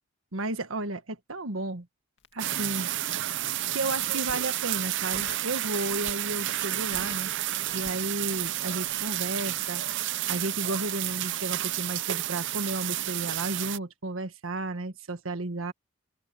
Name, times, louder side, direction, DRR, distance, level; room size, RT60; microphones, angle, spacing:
voice 1, 0.3-1.9 2.3-2.9 3.7-7.3 7.7-9.8 10.3-15.7, right 2 dB, 80° right, 1.5 m, -33 dB
Crackle, 2.2-3.3 3.9-4.5 5.1-5.5 5.9-6.4 6.7-8.6 8.9-9.1, left 2 dB, 60° left, 2.1 m, -47 dB
sound 1, 2.4-13.8, right 14 dB, 60° right, 0.6 m, -31 dB
open air
head